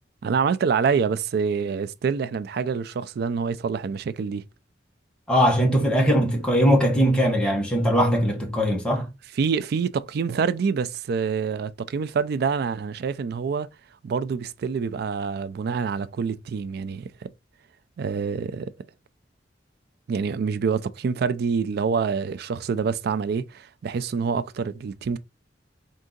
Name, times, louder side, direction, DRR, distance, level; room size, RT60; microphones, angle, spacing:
voice 1, 0.2-4.4 9.4-13.7 14.0-17.3 18.0-18.7 20.1-25.2, right 6 dB, 60° right, 0.3 m, -26 dB
voice 2, 5.3-9.1, equal, 5° left, 1.1 m, -20 dB
3.7 x 2.6 x 3.7 m
head